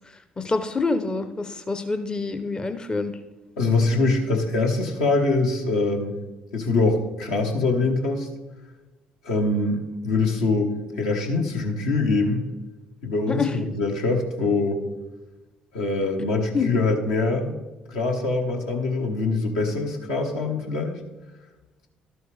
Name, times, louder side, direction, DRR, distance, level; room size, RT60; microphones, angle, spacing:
voice 1, 0.4-3.1 13.3-13.5 16.5-16.7, left 4 dB, 20° left, 9 dB, 0.7 m, -26 dB
voice 2, 3.6-6.2 6.5-8.3 9.2-12.4 13.0-14.8 15.7-17.6 17.9-20.9, left 3 dB, 65° left, 1 dB, 1.1 m, -23 dB
12.5 x 7.7 x 3.3 m, 1.1 s
figure-of-eight pair, 50°, 4 cm